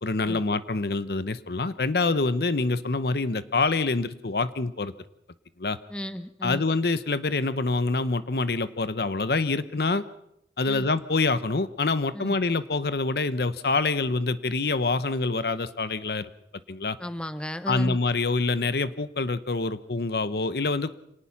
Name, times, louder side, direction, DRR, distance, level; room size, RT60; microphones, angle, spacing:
voice 1, 0.0-4.9 5.6-5.8 6.4-10.0 10.6-16.3 16.7-17.0 17.7-21.0, left 3 dB, 60° left, 14 dB, 0.8 m, -26 dB
voice 2, 5.9-6.7 10.7-10.9 12.1-12.3 17.0-18.0, equal, 5° left, 11 dB, 0.8 m, -34 dB
26.0 x 18.5 x 5.9 m, 0.80 s
head